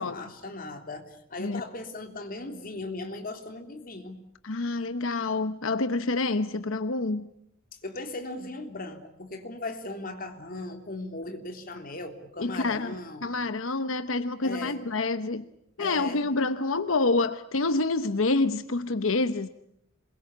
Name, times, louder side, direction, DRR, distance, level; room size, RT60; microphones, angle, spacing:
voice 1, 0.0-4.2 7.7-13.3 14.4-14.8 15.8-16.3, left 2 dB, 45° left, 3.4 m, -38 dB
voice 2, 4.4-7.3 12.4-15.5 15.8-19.5, left 3 dB, 90° left, 1.0 m, -27 dB
27.0 x 22.5 x 8.5 m
head